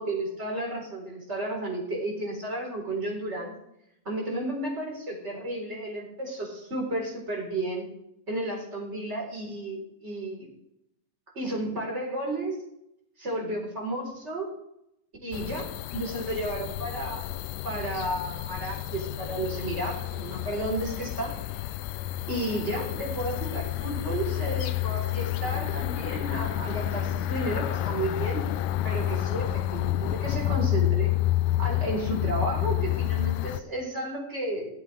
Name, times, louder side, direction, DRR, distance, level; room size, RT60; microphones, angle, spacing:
voice 1, 0.0-3.5 4.0-7.9 8.3-10.5 11.3-12.6 13.2-14.5 15.2-17.2 17.6-21.4 22.3-28.4 28.8-31.1 31.6-34.7, right 1 dB, 20° right, -1 dB, 4.1 m, -32 dB
sound 1, 15.3-33.6, left 14 dB, 80° left, 2.1 m, -29 dB
24.0 x 8.1 x 3.4 m, 0.80 s
omnidirectional pair, 3.9 m